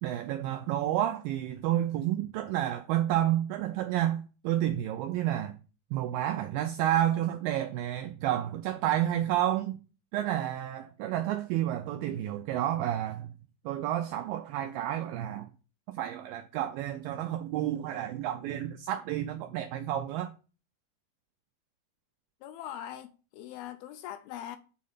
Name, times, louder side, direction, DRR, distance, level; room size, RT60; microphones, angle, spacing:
voice 1, 0.0-5.5 5.9-9.8 10.1-13.3 13.7-15.5 16.0-20.3, right 12 dB, 85° right, 2.0 m, -30 dB
voice 2, 22.4-24.6, left 11 dB, 80° left, 2.3 m, -41 dB
7.4 x 4.3 x 5.5 m
omnidirectional pair, 4.7 m